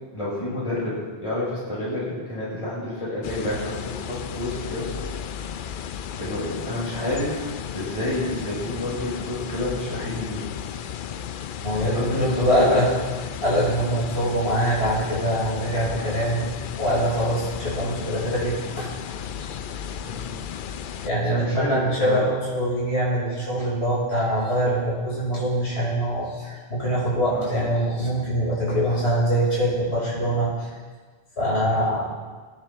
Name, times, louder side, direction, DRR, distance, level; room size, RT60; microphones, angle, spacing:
voice 1, 0.1-4.9 5.2-5.6 6.2-10.5 11.7-12.9 20.0-20.3 20.9-22.2 27.3-27.6 31.6-31.9, left 1 dB, 30° left, -7 dB, 4.9 m, -29 dB
sound 1, 3.2-21.1, left 8 dB, 60° left, 0.6 m, -34 dB
voice 2, 11.6-12.9 13.4-18.9 19.4-19.6 21.0-30.7 31.4-32.0, right 1 dB, 75° left, -8 dB, 5.9 m, -24 dB
21.5 x 10.5 x 3.6 m, 1.4 s
omnidirectional pair, 1.1 m